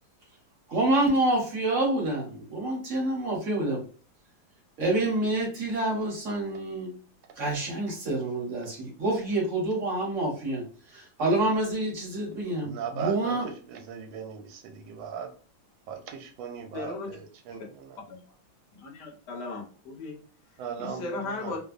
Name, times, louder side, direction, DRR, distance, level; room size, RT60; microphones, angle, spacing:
voice 1, 0.7-3.8 4.8-6.9 7.4-13.5, right 2 dB, 50° right, -2 dB, 0.9 m, -27 dB
voice 2, 12.6-15.3 15.9-18.0 20.6-21.6, right 7 dB, 80° right, 5 dB, 1.3 m, -38 dB
voice 3, 16.7-17.2 18.1-18.2 18.7-20.2 20.8-21.6, left 3 dB, 65° left, 0 dB, 1.2 m, -36 dB
3.3 x 2.0 x 2.4 m, 0.40 s
omnidirectional pair, 2.1 m